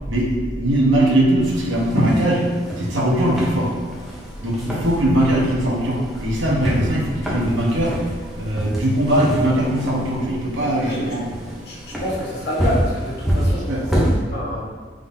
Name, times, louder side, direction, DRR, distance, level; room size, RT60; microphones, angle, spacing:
voice 1, 0.1-2.4 2.8-3.7 4.4-8.0 8.4-11.3 13.5-13.8, right 1 dB, 85° right, -3 dB, 1.0 m, -20 dB
sound 1, 1.4-14.2, equal, ahead, 0.7 m, -27 dB
voice 2, 11.6-13.7 14.3-14.7, equal, 55° left, -6 dB, 1.4 m, -28 dB
5.1 x 3.8 x 2.7 m, 1.5 s
head